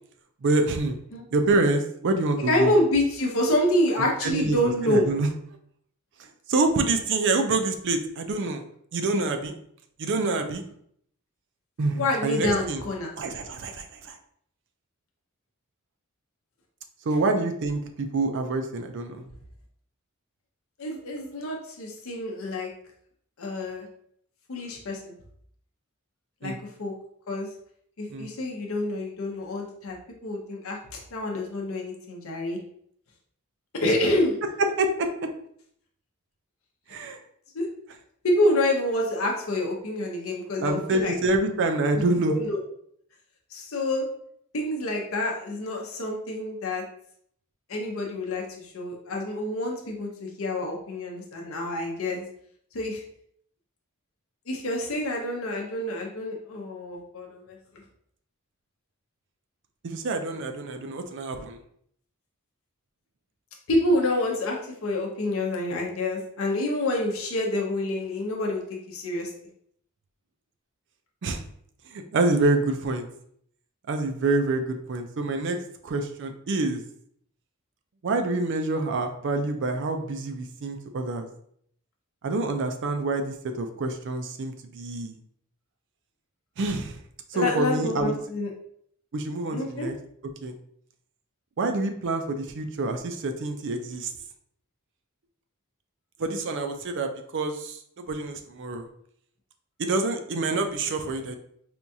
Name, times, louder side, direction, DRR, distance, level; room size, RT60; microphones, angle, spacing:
voice 1, 0.4-1.0 1.3-2.7 4.0-4.6 4.8-5.3 6.5-8.6 8.9-9.5 10.0-10.6 11.8-12.8 13.2-14.1 17.0-19.3 26.4-26.6 28.1-28.3 33.8-33.9 34.8-35.3 36.9-37.2 40.6-42.4 59.8-61.6 71.2-71.4 71.9-73.1 73.9-75.6 75.8-76.8 78.0-81.3 82.2-85.1 86.6-87.0 87.3-88.1 89.1-90.0 90.4-90.6 91.6-94.1 96.2-98.9 99.8-101.4, right 2 dB, 60° right, 6 dB, 0.4 m, -27 dB
voice 2, 2.5-5.1 12.0-13.1 20.8-22.7 23.4-23.9 24.5-25.1 26.4-26.5 26.8-26.9 27.3-27.5 28.0-30.0 30.2-30.8 31.1-32.6 33.7-34.3 37.5-37.7 38.2-41.1 42.3-42.6 43.5-44.1 44.5-46.8 47.7-52.2 52.7-53.0 54.5-57.6 63.7-68.6 68.9-69.3 87.3-88.5 89.5-89.9, left 1 dB, 65° left, 0 dB, 0.6 m, -27 dB
4.4 x 2.3 x 2.6 m, 0.67 s
head